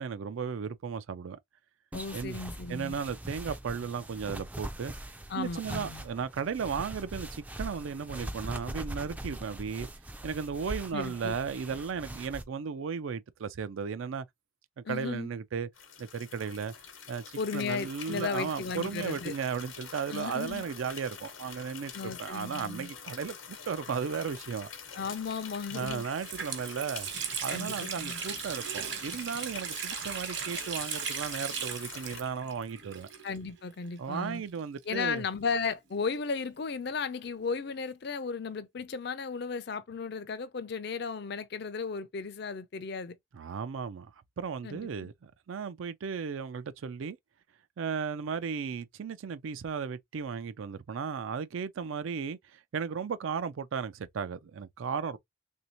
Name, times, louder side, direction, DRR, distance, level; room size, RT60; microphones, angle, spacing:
voice 1, 0.0-1.4 2.1-2.4 2.7-4.9 5.3-9.9 10.2-14.3 14.8-15.7 16.0-16.7 17.1-17.2 17.5-24.7 25.7-27.1 27.4-33.1 34.0-35.2 43.3-47.2 47.8-55.2, right 6 dB, 75° right, 0.4 m, -35 dB
voice 2, 1.9-3.0 5.3-6.0 10.9-11.3 14.8-15.3 17.4-19.3 20.1-20.6 21.9-22.9 24.9-26.0 27.5-28.2 33.2-34.4 34.9-43.2 44.6-45.1, left 5 dB, 55° left, 0.5 m, -35 dB
sound 1, 1.9-12.4, right 1 dB, 5° right, 0.3 m, -42 dB
sound 2, 15.8-32.2, left 7 dB, 80° left, 1.0 m, -46 dB
Water tap faucet, 25.4-25.5 25.9-33.6 33.8-33.9 34.8-36.3, right 7 dB, 60° right, 1.1 m, -38 dB
3.4 x 2.7 x 2.8 m
head